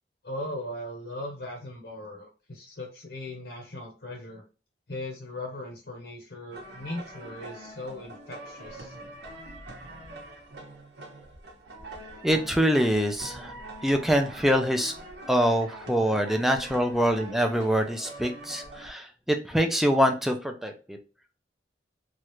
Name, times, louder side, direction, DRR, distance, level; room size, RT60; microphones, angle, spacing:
voice 1, 0.2-4.4 4.9-9.0, left 1 dB, 65° left, 1 dB, 0.8 m, -38 dB
sound 1, 6.5-18.9, right 1 dB, 75° right, 0.9 m, -43 dB
voice 2, 12.2-13.5 13.8-14.9 15.3-21.0, equal, ahead, 4 dB, 0.4 m, -24 dB
3.1 x 2.4 x 3.0 m, 0.35 s
head